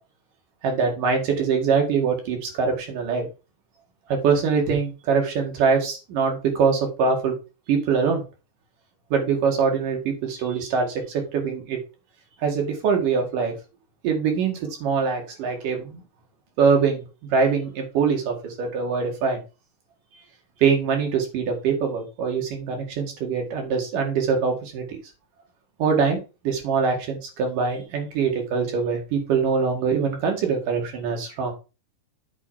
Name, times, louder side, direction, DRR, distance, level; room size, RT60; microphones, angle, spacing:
voice 1, 0.6-3.3 4.1-7.3 7.7-8.2 9.1-11.8 12.4-13.5 14.0-16.0 16.6-17.1 17.3-19.4 20.6-25.0 25.8-26.2 26.4-31.5, right 5 dB, 85° right, 2 dB, 3.7 m, -23 dB
8.0 x 4.6 x 5.6 m, 0.31 s
omnidirectional pair, 3.7 m